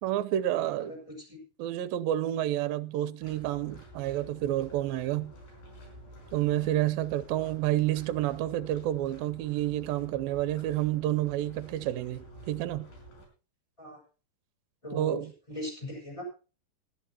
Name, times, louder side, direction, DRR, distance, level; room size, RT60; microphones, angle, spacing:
voice 1, 0.0-0.9 1.6-5.3 6.3-12.9 14.9-15.3, right 13 dB, 80° right, 2.5 m, -29 dB
voice 2, 0.8-1.4 13.8-14.0 14.8-15.2 15.5-16.2, equal, 10° left, 5.9 m, -39 dB
sound 1, 3.2-13.3, right 1 dB, 65° left, 5.9 m, -50 dB
19.0 x 13.5 x 2.9 m
omnidirectional pair, 4.3 m